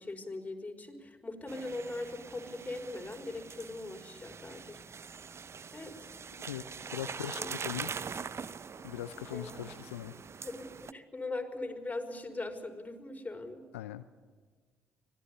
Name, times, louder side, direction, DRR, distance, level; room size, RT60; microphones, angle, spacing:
voice 1, 0.0-4.8 5.7-6.1 7.3-7.6 9.3-9.5 10.4-13.6, left 2 dB, 20° left, 3 dB, 5.0 m, -40 dB
sound 1, 1.5-10.9, right 6 dB, 40° right, 0.8 m, -43 dB
voice 2, 6.4-7.9 8.8-10.1 13.7-14.0, left 12 dB, 85° left, 11 dB, 0.7 m, -40 dB
25.0 x 18.5 x 8.4 m, 1.5 s
hypercardioid pair, 45°, 7 cm